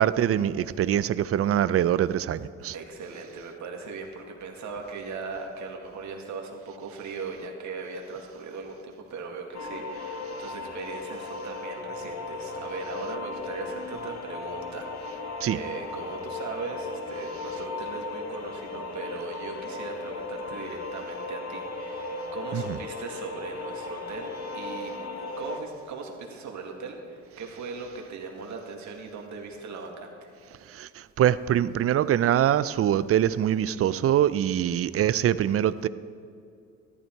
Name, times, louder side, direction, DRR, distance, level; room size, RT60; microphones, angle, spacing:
voice 1, 0.0-2.7 15.4-15.6 22.5-22.8 30.7-35.9, right 11 dB, 50° right, 16 dB, 0.5 m, -24 dB
voice 2, 2.7-30.3, right 4 dB, 70° right, 1 dB, 2.1 m, -39 dB
sound 1, 9.5-25.6, left 3 dB, 60° left, 1.3 m, -36 dB
14.0 x 12.0 x 4.6 m, 2.5 s
cardioid pair, 90°, 30 cm